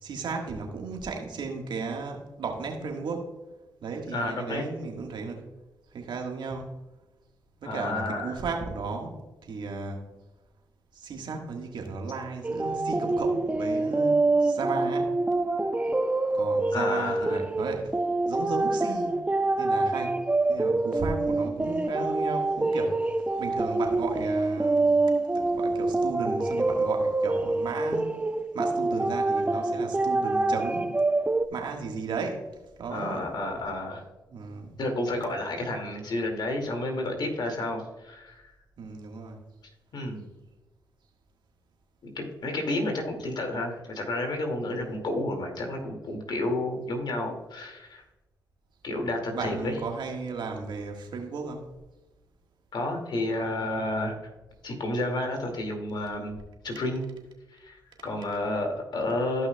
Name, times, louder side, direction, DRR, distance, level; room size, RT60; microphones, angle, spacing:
voice 1, 0.0-3.4 3.8-5.5 5.9-6.7 7.6-10.0 10.9-15.1 16.3-18.0 18.3-19.2 19.6-20.2 20.5-24.9 25.3-28.2 28.5-31.0 31.5-32.5 32.8-33.3 34.3-34.8 38.8-39.4 44.7-45.0 49.3-51.6, right 4 dB, 65° right, 2 dB, 1.6 m, -35 dB
voice 2, 4.1-4.6 7.6-8.4 16.7-17.4 32.9-34.0 34.8-38.4 39.9-40.2 42.2-48.0 48.8-49.7 52.7-54.2 54.6-56.4 56.6-57.0 57.5-59.5, left 2 dB, 60° left, 3 dB, 2.3 m, -31 dB
Blip Female Vocal Chops, 12.4-31.5, right 2 dB, 15° right, 0.6 m, -26 dB
14.5 x 5.7 x 2.3 m, 1.0 s
supercardioid pair, 45°, 8 cm